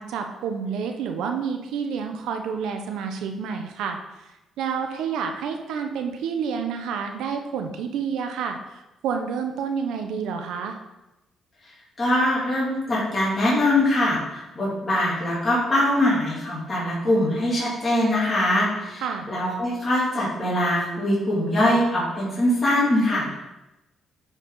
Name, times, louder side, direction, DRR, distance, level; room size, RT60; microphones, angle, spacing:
voice 1, 0.0-4.3 4.6-10.8 19.0-19.3, right 6 dB, 85° right, 5 dB, 1.0 m, -29 dB
voice 2, 12.0-19.0 19.3-23.4, left 1 dB, 30° left, -7 dB, 3.0 m, -22 dB
9.8 x 4.9 x 4.0 m, 0.96 s
cardioid pair, 90°, 0 cm